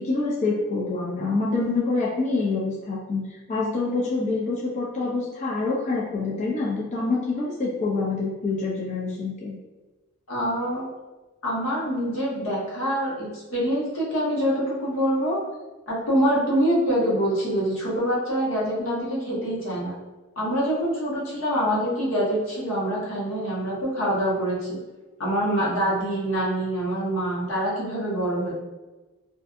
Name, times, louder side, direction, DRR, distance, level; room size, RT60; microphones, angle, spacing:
voice 1, 0.0-3.2 3.5-9.6, left 3 dB, 35° left, -5 dB, 0.3 m, -26 dB
voice 2, 10.3-10.9 11.4-15.4 15.9-19.9 20.4-24.8 25.2-28.5, equal, 85° left, -6 dB, 1.0 m, -25 dB
2.5 x 2.4 x 2.3 m, 1.2 s
head